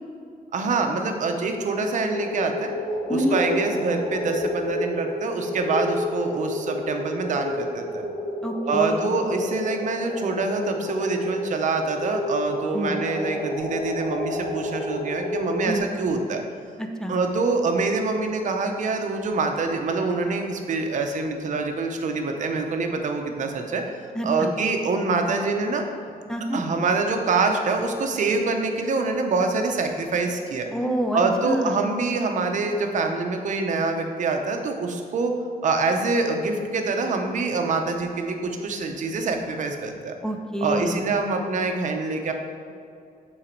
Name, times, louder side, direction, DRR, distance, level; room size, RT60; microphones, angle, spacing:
voice 1, 0.5-2.7 3.1-8.0 8.7-16.4 17.1-23.8 24.2-25.8 26.5-30.7 31.1-35.3 35.6-40.1 40.6-42.3, right 3 dB, 55° right, 4 dB, 0.7 m, -25 dB
sound 1, 2.0-15.8, left 1 dB, 45° left, 1.4 m, -30 dB
voice 2, 3.1-3.4 8.4-9.2 12.7-13.0 15.6-15.9 16.8-17.1 24.1-24.5 26.3-26.6 30.7-31.8 40.2-41.1, right 1 dB, 5° left, 3 dB, 0.4 m, -27 dB
9.0 x 3.9 x 4.5 m, 2.4 s
wide cardioid pair, 165°, 15 cm